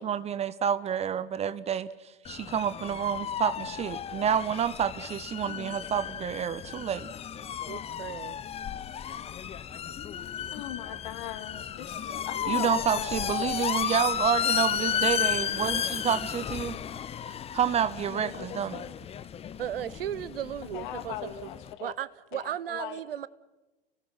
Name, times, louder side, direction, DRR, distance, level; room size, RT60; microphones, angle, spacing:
voice 1, 0.0-7.1 12.5-16.8 17.5-18.8, right 8 dB, 20° right, 16 dB, 0.7 m, -29 dB
sound 1, 2.2-21.7, left 9 dB, 20° left, 0.8 m, -33 dB
voice 2, 5.4-5.8 10.5-13.7 18.1-19.0 20.7-21.9 22.3-23.0, left 12 dB, 55° left, 10 dB, 2.3 m, -40 dB
voice 3, 7.7-8.4 19.6-21.5 21.8-23.3, right 11 dB, 75° right, 20 dB, 0.8 m, -35 dB
30.0 x 18.0 x 5.8 m, 1.1 s
hypercardioid pair, 95°, 29 cm